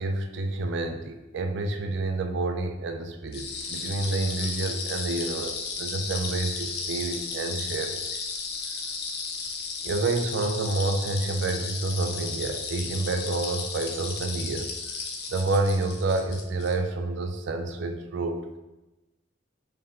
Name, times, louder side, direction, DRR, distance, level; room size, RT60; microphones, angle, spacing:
voice 1, 0.0-8.0 9.0-9.1 9.8-14.9 15.3-18.4, right 2 dB, 60° right, 6 dB, 0.4 m, -29 dB
sound 1, 3.3-16.7, left 4 dB, 55° left, 0.5 m, -34 dB
4.0 x 2.6 x 3.6 m, 1.0 s
head